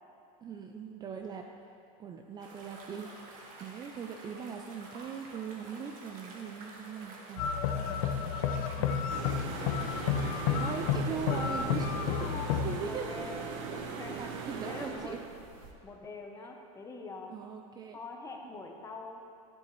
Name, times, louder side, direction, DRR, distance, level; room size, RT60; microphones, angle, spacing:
voice 1, 0.4-1.5 2.0-7.5 7.9-8.0 8.8-9.0 10.6-12.3 12.6-13.2 14.1-15.2 17.3-18.0, right 6 dB, 25° right, 3 dB, 0.3 m, -40 dB
sound 1, 2.4-13.6, right 2 dB, 50° right, 1.4 m, -50 dB
sound 2, 7.4-12.8, left 7 dB, 80° left, 0.7 m, -31 dB
sound 3, 9.1-15.7, right 5 dB, 70° right, 0.9 m, -40 dB
voice 2, 12.9-13.4 13.7-14.2 14.6-15.2 15.8-17.4 17.9-19.2, left 3 dB, 15° left, 2 dB, 0.7 m, -44 dB
10.5 x 7.1 x 3.0 m, 2.5 s
supercardioid pair, 140°, 18 cm